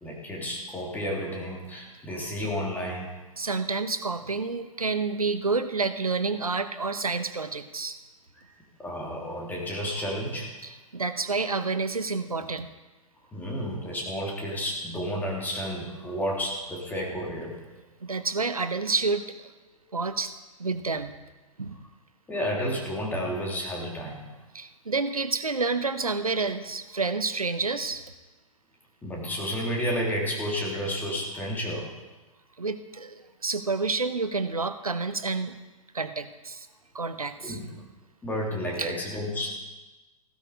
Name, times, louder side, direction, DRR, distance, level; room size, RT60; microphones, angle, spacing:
voice 1, 0.0-3.1 8.8-10.5 13.3-17.6 18.1-18.2 22.3-24.2 29.0-31.9 37.4-37.7 38.2-39.5, equal, 10° left, -2 dB, 3.2 m, -31 dB
voice 2, 3.4-8.0 10.6-12.7 18.0-19.2 19.9-20.3 20.6-21.1 21.6-21.8 24.5-28.0 32.6-35.5 35.9-36.7 36.9-37.6 38.8-38.9, right 4 dB, 80° right, 10 dB, 1.0 m, -29 dB
16.0 x 12.0 x 4.9 m, 1.2 s
figure-of-eight pair, 110°, 18 cm